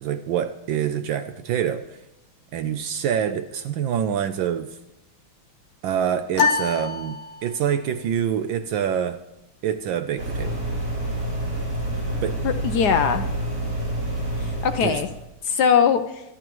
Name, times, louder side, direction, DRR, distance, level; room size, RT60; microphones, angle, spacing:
voice 1, 0.0-2.0 2.5-4.8 5.8-9.2 9.6-10.6 12.2-12.4 14.8-15.0, right 9 dB, 75° right, 10 dB, 1.3 m, -26 dB
sound 1, 6.3-7.8, left 5 dB, 90° left, 1.7 m, -25 dB
sound 2, 10.2-15.2, right 1 dB, 55° right, 4.2 m, -28 dB
voice 2, 12.4-13.3 14.4-15.1 15.4-16.2, left 7 dB, 70° left, 9 dB, 1.0 m, -21 dB
24.5 x 11.5 x 3.1 m, 0.90 s
omnidirectional pair, 2.3 m